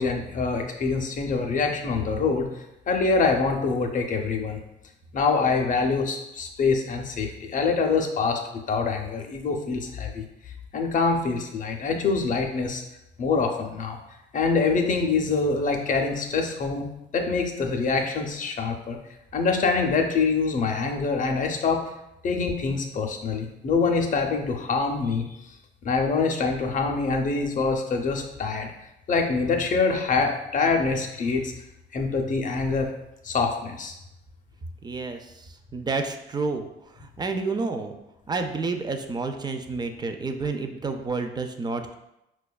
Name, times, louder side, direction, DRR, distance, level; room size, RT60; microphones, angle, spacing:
voice 1, 0.0-2.5 2.9-4.6 5.1-8.4 8.7-10.2 10.7-12.8 13.2-14.0 14.3-19.0 19.3-21.9 22.2-25.3 25.8-28.7 29.1-31.5 31.9-32.9 33.2-34.0, left 4 dB, 40° left, 3 dB, 0.5 m, -25 dB
voice 2, 34.8-38.0 38.3-41.9, right 3 dB, 20° right, 6 dB, 0.3 m, -30 dB
4.6 x 2.2 x 2.2 m, 0.88 s
cardioid pair, 90°, 20 cm